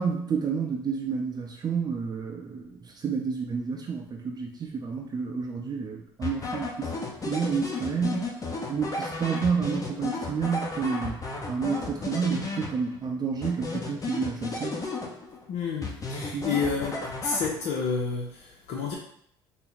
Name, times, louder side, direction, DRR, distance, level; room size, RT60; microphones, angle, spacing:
voice 1, 0.0-6.9 7.2-8.3 8.7-14.8 16.3-16.5, right 5 dB, 35° right, 0 dB, 0.5 m, -30 dB
sound 1, 6.2-13.1 13.4-15.4 15.8-17.9, left 3 dB, 30° left, 0.9 m, -34 dB
voice 2, 15.5-18.9, left 5 dB, 65° left, 0 dB, 0.6 m, -30 dB
4.1 x 2.0 x 3.9 m, 0.72 s
hypercardioid pair, 70°, 11 cm